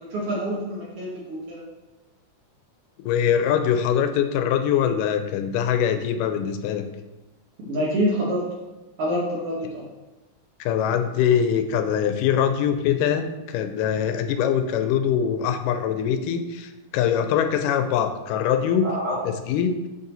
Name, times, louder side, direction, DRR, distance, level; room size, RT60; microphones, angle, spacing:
voice 1, 0.1-1.6 7.6-8.5 9.0-9.9 18.8-19.2, equal, 60° right, -4 dB, 1.6 m, -26 dB
voice 2, 3.0-6.8 10.6-18.9 19.3-19.8, left 8 dB, 85° left, 8 dB, 2.1 m, -23 dB
6.9 x 4.0 x 3.9 m, 1.1 s
omnidirectional pair, 3.7 m